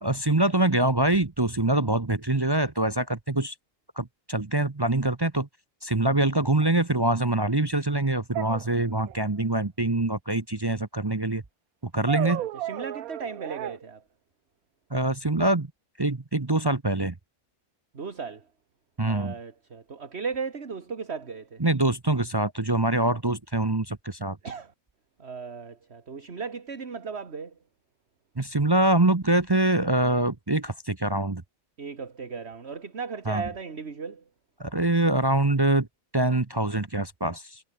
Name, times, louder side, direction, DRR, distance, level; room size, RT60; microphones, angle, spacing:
voice 1, 0.0-3.5 4.0-5.5 5.8-11.4 11.8-12.4 14.9-15.7 16.0-17.1 19.0-19.3 21.6-24.4 28.4-31.4 33.3-33.4 34.6-35.9 36.1-37.6, right 2 dB, 20° right, 0.8 m, -24 dB
sound 1, 6.6-6.7 8.3-9.3 12.1-13.8, right 14 dB, 90° right, 1.1 m, -33 dB
voice 2, 12.1-14.0 17.9-18.5 19.0-21.6 24.4-24.7 25.2-27.6 31.8-34.2, right 5 dB, 50° right, 2.1 m, -36 dB
omnidirectional pair, 1.5 m